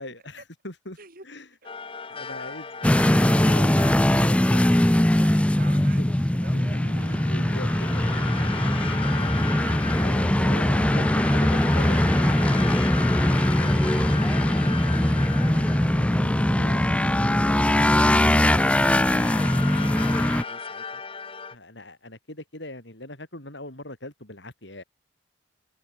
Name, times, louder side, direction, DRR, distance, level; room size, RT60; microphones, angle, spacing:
voice 1, 0.0-1.0 1.2-1.5 2.1-5.2 5.9-6.2 6.5-6.6 7.0-8.3 9.9-12.1 13.6-13.8 16.6-16.9 21.5-24.8, left 1 dB, 65° left, 6.7 m, -41 dB
sound 1, 1.6-5.8 6.7-17.2 17.7-21.5, left 5 dB, 30° left, 1.2 m, -37 dB
sound 2, 2.8-20.4, left 1 dB, 5° left, 0.4 m, -21 dB
voice 2, 5.1-7.2 8.2-8.4 10.4-12.6 13.1-16.6 19.9-21.0, right 2 dB, 45° right, 6.5 m, -48 dB
sound 3, 6.5-20.1, right 1 dB, 85° right, 4.7 m, -42 dB
head